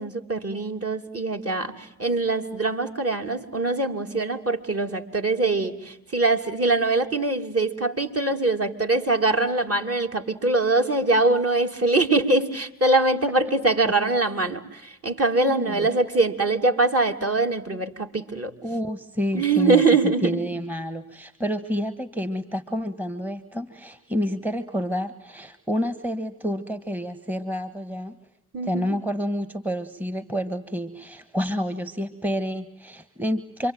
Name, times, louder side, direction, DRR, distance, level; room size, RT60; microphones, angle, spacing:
voice 1, 0.0-18.5 19.3-20.4 28.5-29.0, right 3 dB, 35° right, 3 dB, 3.0 m, -23 dB
voice 2, 15.5-15.9 18.6-19.8 20.2-28.2 28.7-33.7, equal, 5° right, 11 dB, 1.5 m, -29 dB
27.5 x 23.5 x 9.3 m, 0.79 s
hypercardioid pair, 45°, 42 cm